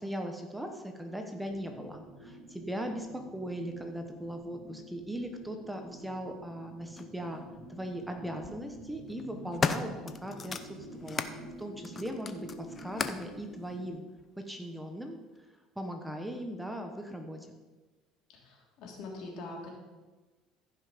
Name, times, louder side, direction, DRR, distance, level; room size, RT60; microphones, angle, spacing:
voice 1, 0.0-3.1 3.3-7.4 7.7-14.0 14.5-15.2 15.8-17.6, equal, 5° right, 4 dB, 1.1 m, -39 dB
sound 1, 1.4-13.9, equal, 75° right, 2.2 m, -48 dB
sound 2, 7.0-7.1 8.2-8.5 9.1-11.4 11.8-13.3 14.2-14.3, left 5 dB, 30° left, 0.7 m, -35 dB
voice 2, 18.3-19.7, left 2 dB, 65° left, -1 dB, 3.1 m, -43 dB
15.0 x 5.7 x 5.1 m, 1.2 s
cardioid pair, 115°, 0 cm